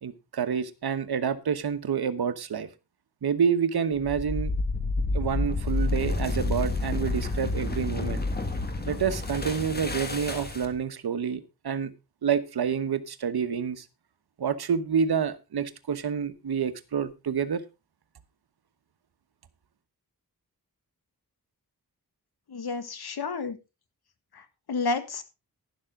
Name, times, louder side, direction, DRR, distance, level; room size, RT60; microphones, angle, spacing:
voice 1, 0.0-2.7 3.2-4.5 5.1-8.2 8.9-11.9 12.2-13.8 14.4-17.6, right 7 dB, 80° right, 1.2 m, -28 dB
sound 1, 4.0-10.8, left 2 dB, 25° left, 1.7 m, -29 dB
voice 2, 22.5-23.6 24.3-25.2, left 4 dB, 80° left, 1.7 m, -31 dB
11.5 x 11.5 x 3.7 m
wide cardioid pair, 165°, 38 cm